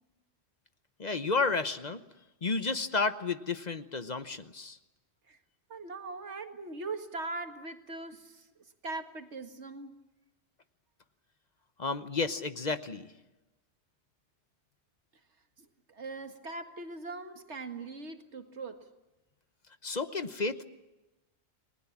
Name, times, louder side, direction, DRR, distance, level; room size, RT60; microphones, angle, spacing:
voice 1, 1.0-2.0 2.4-4.8 11.8-13.1 19.8-20.6, left 4 dB, 40° left, 11 dB, 1.0 m, -31 dB
voice 2, 5.7-8.5 8.8-9.9 15.6-18.9, right 3 dB, 90° right, 6 dB, 2.1 m, -41 dB
29.5 x 20.0 x 7.3 m, 1.0 s
omnidirectional pair, 1.1 m